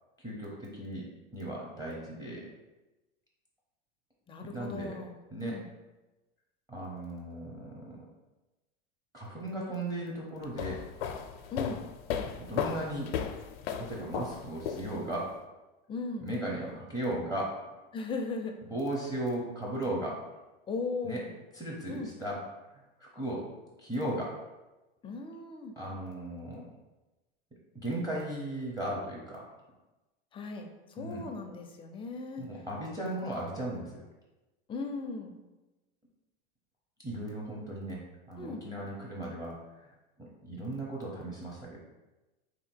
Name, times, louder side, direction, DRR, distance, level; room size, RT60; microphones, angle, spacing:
voice 1, 0.2-1.1 1.3-2.5 4.4-4.9 5.3-5.6 6.7-8.0 9.1-10.8 12.4-13.1 13.8-15.3 16.2-17.5 18.7-20.2 21.0-21.2 21.5-22.4 23.0-23.4 23.8-24.3 25.8-26.6 27.8-29.5 31.0-31.2 32.4-34.0 37.0-38.0 38.3-39.9 40.4-41.8, right 1 dB, 15° right, -5 dB, 0.8 m, -36 dB
voice 2, 4.3-5.7 11.5-11.8 15.9-16.3 17.9-18.6 20.7-21.3 21.9-22.1 25.0-25.7 30.3-32.5 34.7-35.4 38.4-38.7, left 3 dB, 20° left, 3 dB, 0.4 m, -37 dB
sound 1, 10.4-15.3, left 8 dB, 85° left, 0.5 m, -35 dB
3.5 x 2.8 x 4.4 m, 1.1 s
supercardioid pair, 125°, 29 cm